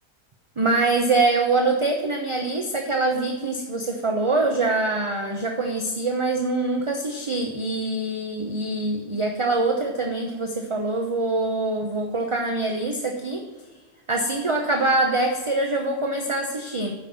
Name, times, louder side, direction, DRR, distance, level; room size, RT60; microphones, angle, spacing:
voice 1, 0.6-13.4 14.1-16.9, right 2 dB, 25° right, 2 dB, 0.7 m, -24 dB
9.0 x 5.7 x 6.9 m, 1.2 s
omnidirectional pair, 1.6 m